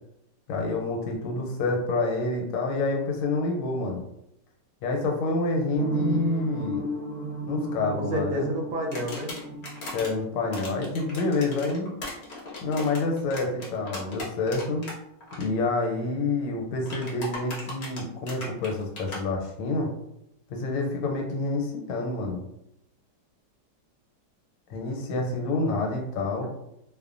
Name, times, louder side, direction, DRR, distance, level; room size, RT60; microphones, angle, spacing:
voice 1, 0.5-4.0 4.8-6.8 7.5-8.5 9.9-11.9 12.6-14.8 15.3-19.9 20.5-22.4 24.7-26.5, left 3 dB, 85° left, 1 dB, 1.3 m, -28 dB
sound 1, 5.8-10.5, right 1 dB, 40° right, 1.0 m, -33 dB
voice 2, 7.9-9.4, equal, 75° right, 0 dB, 1.2 m, -30 dB
sound 2, 8.9-10.1 10.5-14.9 15.2-15.4 16.8-19.2, left 2 dB, 60° left, 0.5 m, -38 dB
3.0 x 2.1 x 2.4 m, 0.80 s
omnidirectional pair, 2.0 m